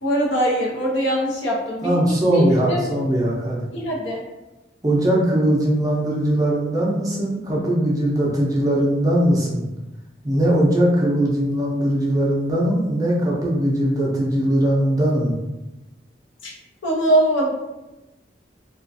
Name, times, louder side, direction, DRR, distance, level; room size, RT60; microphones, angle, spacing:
voice 1, 0.0-2.8 3.7-4.2 16.8-17.5, right 1 dB, 80° left, -3 dB, 0.7 m, -22 dB
voice 2, 1.8-3.6 4.8-9.7 10.2-15.4, right 1 dB, 20° right, -4 dB, 0.4 m, -20 dB
2.3 x 2.2 x 2.5 m, 1.0 s
head